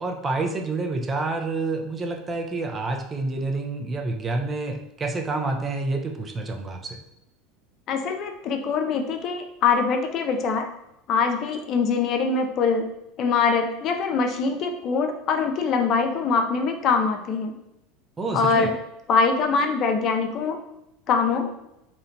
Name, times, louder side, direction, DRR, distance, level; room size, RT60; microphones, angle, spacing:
voice 1, 0.0-7.0 18.2-18.7, right 3 dB, 25° right, 3 dB, 0.4 m, -28 dB
voice 2, 7.9-10.7 11.1-12.9 13.2-17.5 18.3-18.7 19.1-20.6 21.1-21.5, left 5 dB, 50° left, 5 dB, 0.3 m, -23 dB
2.8 x 2.1 x 2.5 m, 0.85 s
hypercardioid pair, 90°, 0 cm